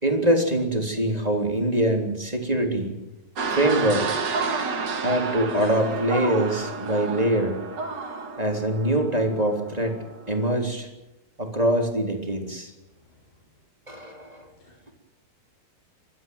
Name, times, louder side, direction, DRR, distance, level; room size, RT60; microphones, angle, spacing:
voice 1, 0.0-3.0 3.5-4.2 5.0-7.6 8.4-10.0 10.3-10.9 11.4-12.7 13.9-14.5, right 1 dB, 10° right, 2 dB, 3.1 m, -24 dB
sound 1, 3.4-10.4, right 4 dB, 40° right, 1.8 m, -31 dB
voice 2, 14.6-14.9, left 2 dB, 50° left, -1 dB, 7.8 m, -58 dB
29.0 x 13.5 x 9.3 m, 0.94 s
omnidirectional pair, 4.4 m